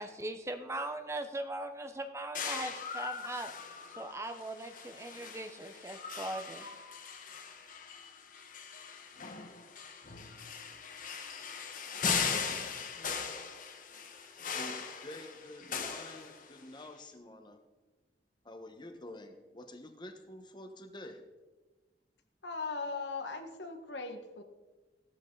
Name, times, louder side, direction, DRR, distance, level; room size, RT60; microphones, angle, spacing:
voice 1, 0.0-3.5 4.0-6.7, right 2 dB, 15° right, 7 dB, 0.9 m, -40 dB
sound 1, 2.3-16.8, left 6 dB, 50° left, 1.3 m, -39 dB
voice 2, 14.5-17.6 18.4-21.2, left 1 dB, 25° left, 5 dB, 1.4 m, -48 dB
voice 3, 22.4-24.4, left 4 dB, 90° left, 5 dB, 1.6 m, -39 dB
16.5 x 13.5 x 4.0 m, 1.2 s
head